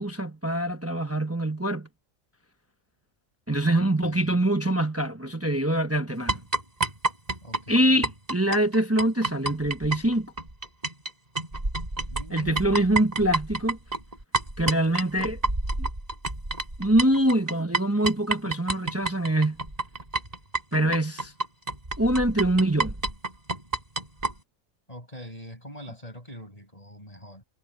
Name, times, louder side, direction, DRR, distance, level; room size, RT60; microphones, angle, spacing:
voice 1, 0.0-1.9 3.5-6.4 7.7-10.3 12.3-13.8 14.6-15.4 15.8-15.9 16.8-19.6 20.7-21.3 22.0-22.9, right 1 dB, 10° right, 0.9 m, -24 dB
voice 2, 3.7-4.4 7.4-8.1 12.1-12.9 24.9-27.4, equal, 25° left, 7.3 m, -43 dB
sound 1, 6.3-11.1 11.4-24.3, right 3 dB, 30° right, 4.9 m, -29 dB
omnidirectional pair, 1.4 m